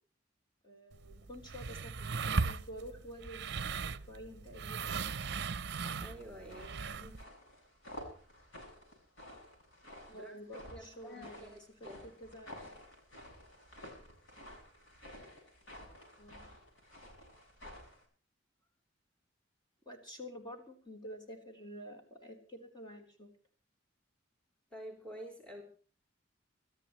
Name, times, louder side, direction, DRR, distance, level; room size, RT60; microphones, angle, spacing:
voice 1, 0.6-5.0 6.5-7.1 10.1-12.7 16.2-16.5 19.9-23.3, equal, 25° left, 2 dB, 3.9 m, -50 dB
sound 1, 0.9-7.2, right 4 dB, 60° right, 0.7 m, -38 dB
sound 2, 5.6-18.0, left 1 dB, 80° left, 6.9 m, -52 dB
voice 2, 6.0-6.7 7.0-7.2 10.1-10.4 10.7-11.6 11.8-12.1 24.7-25.6, equal, 5° left, 1 dB, 3.5 m, -49 dB
28.5 x 13.5 x 3.2 m, 0.41 s
head